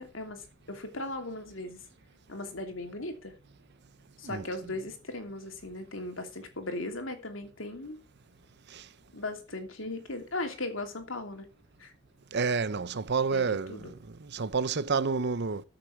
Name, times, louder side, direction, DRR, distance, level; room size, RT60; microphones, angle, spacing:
voice 1, 0.0-1.8 2.3-3.3 4.2-8.0 9.1-11.5 11.8-11.9 13.3-13.9, left 2 dB, 75° left, 2.8 m, -38 dB
voice 2, 12.3-15.6, right 4 dB, 60° right, 0.8 m, -29 dB
13.5 x 6.8 x 6.1 m
head